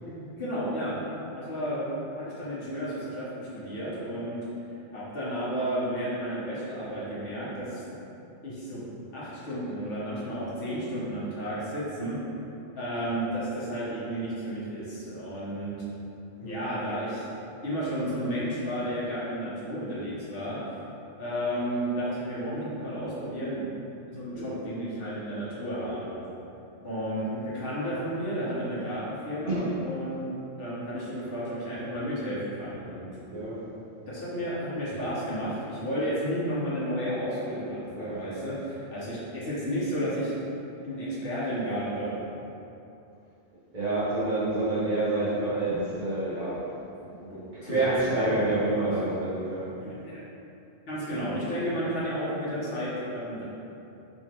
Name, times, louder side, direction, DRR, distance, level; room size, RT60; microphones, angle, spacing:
voice 1, 0.0-1.0 1.3-4.4 4.9-7.8 8.4-8.8 9.1-12.2 12.7-15.7 16.4-17.2 17.6-20.6 21.2-23.7 24.1-26.1 26.8-33.1 34.1-40.3 40.8-42.2 46.9-47.9 48.1-48.9 49.7-50.2 50.9-53.5, equal, 60° left, -9 dB, 1.2 m, -32 dB
voice 2, 29.5-29.8 33.3-33.6 34.9-35.0 37.9-38.5 43.7-46.6 47.5-49.7, right 2 dB, 50° right, -11 dB, 0.9 m, -28 dB
3.4 x 3.1 x 2.9 m, 2.8 s
omnidirectional pair, 1.1 m